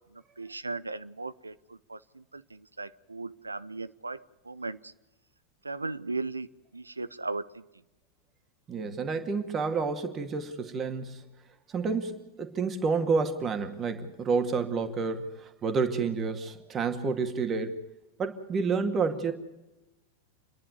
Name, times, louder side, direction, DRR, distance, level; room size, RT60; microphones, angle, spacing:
voice 1, 0.1-4.9 5.6-7.6, right 3 dB, 80° right, 15 dB, 0.7 m, -37 dB
voice 2, 8.7-11.2 11.7-17.8 18.2-19.3, right 4 dB, 25° right, 7 dB, 2.2 m, -29 dB
28.5 x 11.0 x 9.5 m, 1.0 s
figure-of-eight pair, 90°, 0 cm